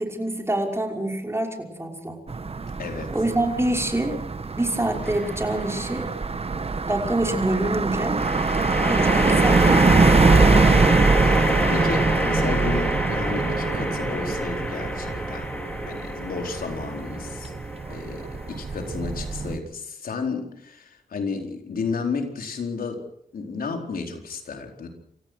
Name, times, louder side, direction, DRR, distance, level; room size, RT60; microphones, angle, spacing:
voice 1, 0.0-2.2 3.1-4.2 4.6-6.1 6.9-8.2 8.9-10.4, right 1 dB, 15° right, 3 dB, 5.7 m, -26 dB
sound 1, 2.3-19.6, right 4 dB, 40° right, 1.4 m, -23 dB
voice 2, 2.8-3.1 11.2-15.5 15.9-17.5 17.9-23.0 23.3-24.9, left 4 dB, 75° left, 4 dB, 4.4 m, -32 dB
sound 2, 5.0-5.6 8.1-19.5, equal, 10° left, 5.1 m, -27 dB
28.0 x 15.0 x 6.5 m, 0.68 s
cardioid pair, 60°, 15 cm